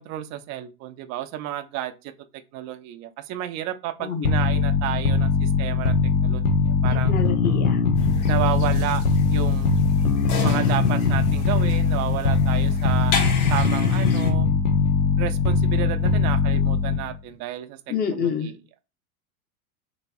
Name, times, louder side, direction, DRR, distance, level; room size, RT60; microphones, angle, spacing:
voice 1, 0.0-2.1 2.5-6.0 6.2-7.1 8.3-9.0 9.3-9.7 10.4-13.1 13.5-14.5 15.2-17.8 18.1-18.6, right 13 dB, 40° right, 0.5 m, -31 dB
voice 2, 4.0-4.3 7.1-7.8 17.9-18.5, left 7 dB, 20° left, 0.8 m, -27 dB
sound 1, 4.2-17.2, left 4 dB, 85° left, 0.7 m, -21 dB
sound 2, 7.9-14.3, left 3 dB, 55° left, 1.6 m, -31 dB
4.1 x 3.3 x 2.3 m
hypercardioid pair, 85°, 44 cm